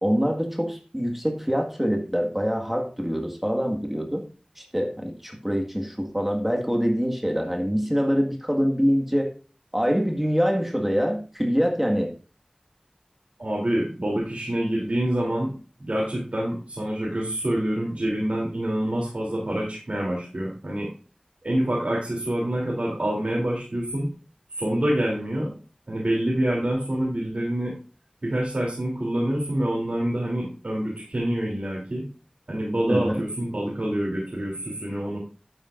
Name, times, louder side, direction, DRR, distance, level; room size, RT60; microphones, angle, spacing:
voice 1, 0.0-4.2 4.6-9.3 9.7-12.1 32.9-33.2, equal, 10° right, 2 dB, 1.8 m, -25 dB
voice 2, 13.4-15.5 15.8-20.9 21.4-24.1 24.5-25.5 25.9-27.7 28.2-32.0 32.5-35.2, right 1 dB, 70° right, -4 dB, 3.2 m, -26 dB
12.5 x 9.8 x 2.6 m, 0.37 s
wide cardioid pair, 45°, 2 cm